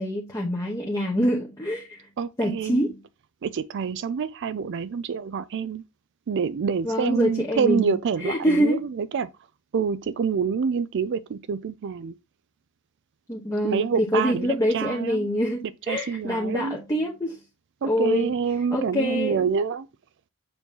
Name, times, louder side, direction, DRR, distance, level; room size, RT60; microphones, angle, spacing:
voice 1, 0.0-2.0 2.4-2.9 6.8-7.9 8.2-8.8 13.3-17.4 17.8-18.3 18.7-19.4, equal, 15° left, 1.0 m, -25 dB
voice 2, 2.2-2.8 3.4-5.8 6.3-9.3 9.7-12.1 13.6-15.3 15.9-16.8 17.8-19.9, right 6 dB, 55° right, 0.4 m, -27 dB
7.0 x 3.0 x 5.3 m
head